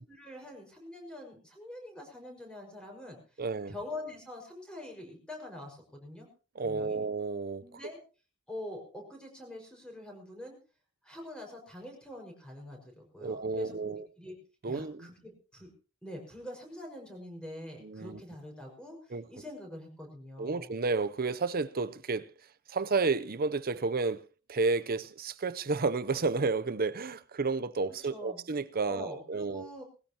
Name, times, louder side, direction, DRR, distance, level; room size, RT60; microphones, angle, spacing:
voice 1, 0.1-3.2 3.7-6.3 6.6-7.0 7.6-8.0 8.5-10.6 11.0-14.3 14.7-15.7 16.0-20.7 28.1-28.4 28.9-29.8, left 1 dB, 5° left, 5.5 m, -45 dB
voice 2, 3.4-3.7 6.6-7.6 13.2-14.1 14.6-15.1 17.8-18.2 19.1-19.3 20.4-22.3 22.7-24.2 24.5-29.7, right 4 dB, 45° right, 0.7 m, -31 dB
20.0 x 16.0 x 3.0 m
head